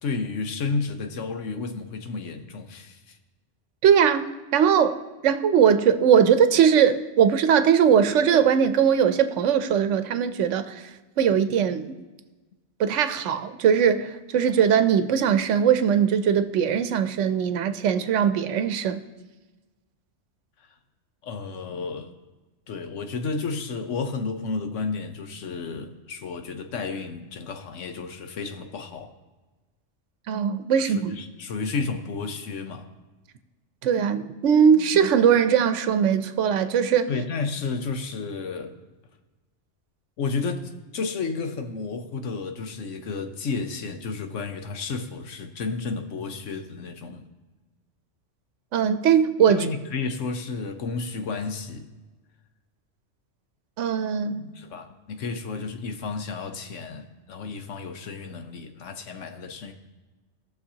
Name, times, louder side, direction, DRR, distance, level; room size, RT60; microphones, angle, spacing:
voice 1, 0.0-3.2 21.2-22.1 22.7-29.1 30.8-32.9 37.1-38.7 40.2-47.3 49.5-51.9 54.5-59.7, left 4 dB, 90° left, 7 dB, 1.2 m, -32 dB
voice 2, 3.8-10.9 11.2-11.8 12.8-19.0 30.3-31.1 33.8-37.1 48.7-49.7 53.8-54.5, right 8 dB, 85° right, 11 dB, 1.0 m, -20 dB
18.0 x 6.4 x 2.8 m, 1.2 s
omnidirectional pair, 1.2 m